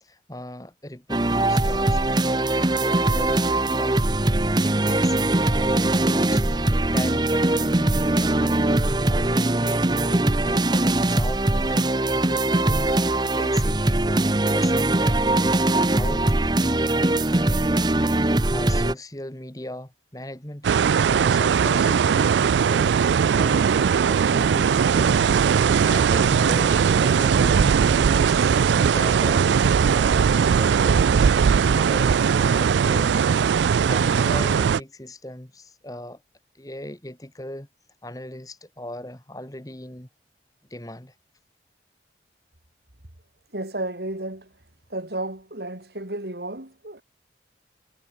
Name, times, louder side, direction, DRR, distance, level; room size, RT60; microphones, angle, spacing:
voice 1, 0.0-17.6 18.0-23.0 23.3-33.3 33.9-36.2 36.6-37.7 38.0-40.1 40.7-41.1, left 1 dB, 20° left, 1.8 m, -38 dB
sound 1, 1.1-18.9, right 2 dB, 25° right, 0.9 m, -21 dB
sound 2, 20.6-34.8, right 6 dB, 80° right, 0.4 m, -19 dB
voice 2, 43.5-44.5 44.9-47.0, right 1 dB, 65° right, 3.0 m, -32 dB
head